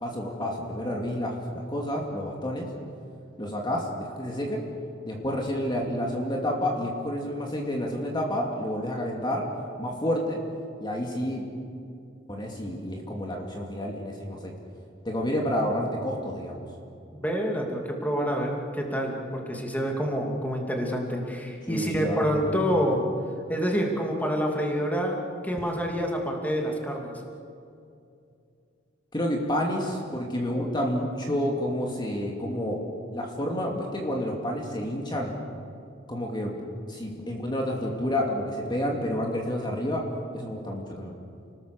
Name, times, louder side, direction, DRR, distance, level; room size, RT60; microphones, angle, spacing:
voice 1, 0.0-2.7 3.4-4.6 5.0-9.4 9.8-10.4 10.8-11.4 12.3-14.5 15.0-16.6 21.7-22.6 29.1-32.8 33.1-35.3 36.1-36.5 36.9-40.0 40.3-41.1, equal, 25° left, 0 dB, 2.5 m, -29 dB
voice 2, 17.1-23.0 23.5-27.1, equal, 10° left, 1 dB, 2.7 m, -27 dB
30.0 x 19.5 x 6.8 m, 2.5 s
head